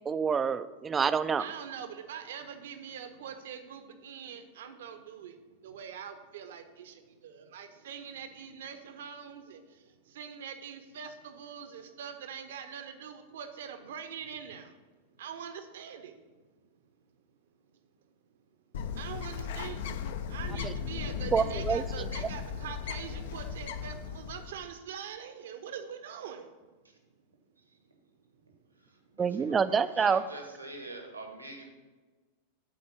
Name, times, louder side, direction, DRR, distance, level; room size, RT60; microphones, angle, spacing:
voice 1, 0.1-1.4 20.6-20.7 21.3-22.1 29.2-30.2, right 6 dB, 20° right, 14 dB, 0.4 m, -27 dB
voice 2, 1.4-14.8 15.1-16.4 18.9-26.7, right 7 dB, 60° right, 8 dB, 0.8 m, -43 dB
Bird, 18.7-24.7, left 7 dB, 55° left, 0.5 m, -37 dB
voice 3, 29.1-31.7, right 2 dB, 85° right, 3 dB, 1.4 m, -44 dB
8.5 x 4.2 x 6.9 m, 1.3 s
figure-of-eight pair, 90°, 0 cm